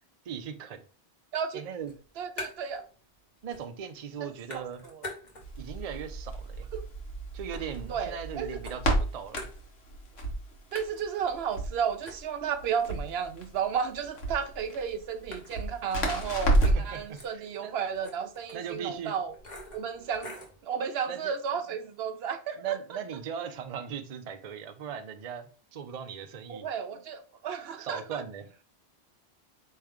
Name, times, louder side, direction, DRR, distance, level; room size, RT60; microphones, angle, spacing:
voice 1, 0.3-0.8 1.5-2.0 3.4-4.8 5.6-6.6 7.3-9.5 16.7-17.7 18.5-19.1 21.1-21.3 22.6-26.7 27.8-28.4, right 7 dB, 45° right, 0.5 m, -38 dB
voice 2, 1.3-1.6 2.2-2.9 4.2-5.1 6.7-6.9 7.9-8.6 10.7-19.3 19.7-20.3 20.6-23.0 26.5-28.2, right 7 dB, 75° right, 0.8 m, -33 dB
sound 1, 1.8-2.9 3.2-3.9 4.1-5.7 6.1-8.3 8.6-10.1 10.4-10.5 10.8-20.6, left 1 dB, 45° left, 1.2 m, -46 dB
Crackle, 5.4-17.0, right 1 dB, 75° left, 1.3 m, -31 dB
4.5 x 3.2 x 3.6 m
omnidirectional pair, 1.1 m